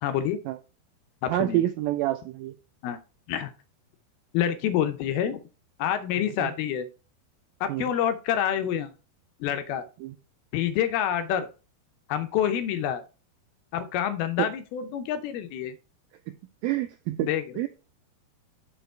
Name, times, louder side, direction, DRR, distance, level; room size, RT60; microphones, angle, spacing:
voice 1, 0.0-0.4 1.2-1.6 2.8-3.0 3.3-3.5 4.3-5.4 5.8-6.9 7.6-8.9 9.4-9.9 10.5-11.5 12.1-13.0 13.7-15.8 17.2-17.4, left 10 dB, 75° left, 9 dB, 2.5 m, -27 dB
voice 2, 1.3-2.5 6.4-6.5 7.7-7.9 10.0-10.1 16.6-17.3 17.6-17.7, right 15 dB, 90° right, 8 dB, 2.1 m, -27 dB
6.7 x 6.1 x 4.5 m, 0.33 s
omnidirectional pair, 4.7 m